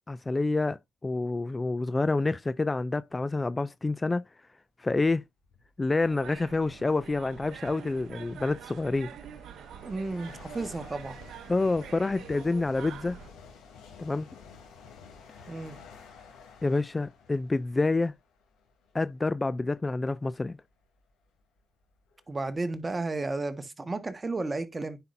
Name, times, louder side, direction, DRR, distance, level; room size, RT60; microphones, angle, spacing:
voice 1, 0.1-4.3 4.8-5.2 5.8-9.1 11.5-13.2 14.0-14.3 16.6-18.1 18.9-20.6, left 3 dB, 20° left, 0.3 m, -28 dB
sound 1, 5.4-5.7 6.8-6.9 7.7-19.1 19.7-19.9 20.7-20.8 21.0-22.6, left 5 dB, 90° left, 3.0 m, -52 dB
sound 2, 6.0-13.3, right 9 dB, 70° right, 0.8 m, -46 dB
voice 2, 9.8-11.2 15.5-15.8 22.3-25.0, right 3 dB, 25° right, 1.5 m, -33 dB
9.8 x 5.7 x 2.6 m
cardioid pair, 90°, 0 cm